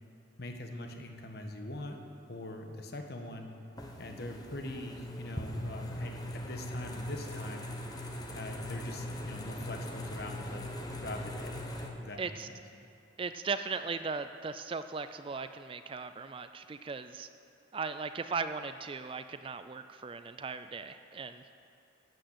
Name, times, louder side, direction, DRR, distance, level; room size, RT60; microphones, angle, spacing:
voice 1, 0.4-2.0 2.3-3.5 4.0-7.7 8.3-10.7 11.0-11.7 12.0-12.3, left 1 dB, 55° left, 4 dB, 1.3 m, -42 dB
sound 1, 3.8-11.9, left 1 dB, 20° left, 1.0 m, -40 dB
voice 2, 12.2-12.5 13.2-17.3 17.7-21.4, right 4 dB, 25° right, 10 dB, 0.3 m, -38 dB
12.5 x 9.0 x 8.0 m, 2.6 s
head